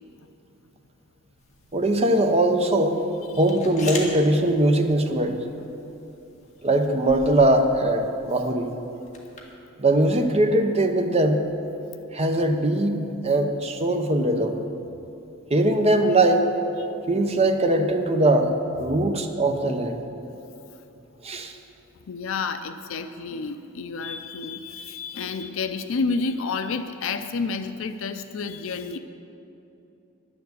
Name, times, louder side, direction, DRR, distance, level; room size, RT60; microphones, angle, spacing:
sound 1, 1.4-9.5, left 3 dB, 35° left, 1.7 m, -43 dB
voice 1, 1.7-3.0 3.4-5.4 6.6-8.7 9.8-11.4 12.1-14.6 15.5-16.5 17.1-18.5 18.8-20.0 21.2-21.5, right 1 dB, 30° right, 5 dB, 0.8 m, -21 dB
voice 2, 22.1-29.0, left 4 dB, 65° left, 9 dB, 0.5 m, -30 dB
11.0 x 7.1 x 8.0 m, 2.8 s
head